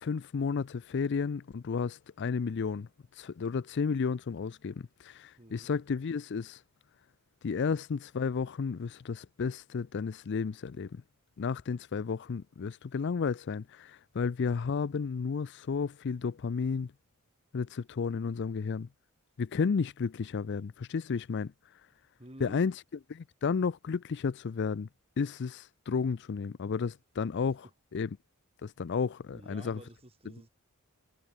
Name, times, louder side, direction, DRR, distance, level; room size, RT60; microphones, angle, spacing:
voice 1, 0.0-6.6 7.4-11.0 11.4-16.9 17.5-18.9 19.4-21.8 22.4-22.8 23.1-24.9 25.2-27.7 27.9-28.2 28.6-29.8, left 5 dB, 55° left, 0.4 m, -32 dB
voice 2, 5.4-5.7 22.2-22.6 29.3-30.5, right 1 dB, 25° right, 3.3 m, -50 dB
head